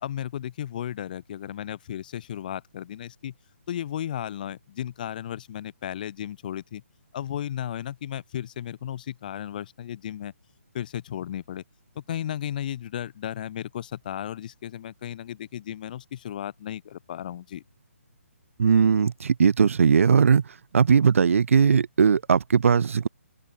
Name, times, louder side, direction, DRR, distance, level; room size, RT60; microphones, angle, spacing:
voice 1, 0.0-3.3 3.7-6.8 7.1-10.3 10.7-11.6 12.0-17.6, left 10 dB, 35° left, 2.4 m, -34 dB
voice 2, 18.6-20.4 20.7-23.1, right 6 dB, 65° right, 0.5 m, -19 dB
open air
hypercardioid pair, 165°, 8 cm